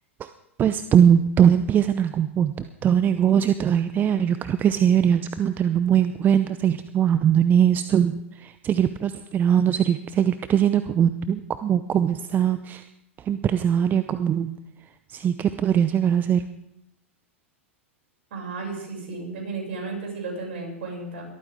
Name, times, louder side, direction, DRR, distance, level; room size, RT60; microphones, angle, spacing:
voice 1, 0.6-12.8 13.2-14.5 15.1-16.4, right 9 dB, 25° right, 11 dB, 0.7 m, -21 dB
voice 2, 18.3-21.2, right 3 dB, 60° right, 0 dB, 7.0 m, -33 dB
22.0 x 14.0 x 3.7 m, 0.83 s
figure-of-eight pair, 100°, 7 cm